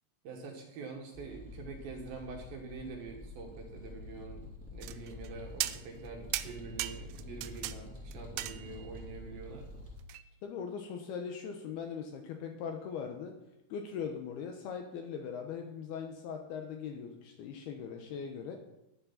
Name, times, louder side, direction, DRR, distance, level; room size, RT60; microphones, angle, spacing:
voice 1, 0.2-9.7, right 4 dB, 65° right, 2 dB, 2.8 m, -45 dB
sound 1, 1.1-10.0, left 1 dB, 5° left, 1.8 m, -47 dB
sound 2, 4.8-5.3 5.6-6.1 6.3-7.8 8.1-9.0 10.1-10.2, right 15 dB, 85° right, 2.4 m, -37 dB
voice 2, 10.4-13.4 13.7-18.6, left 6 dB, 70° left, 4 dB, 2.6 m, -40 dB
10.5 x 10.5 x 5.7 m, 0.88 s
omnidirectional pair, 5.3 m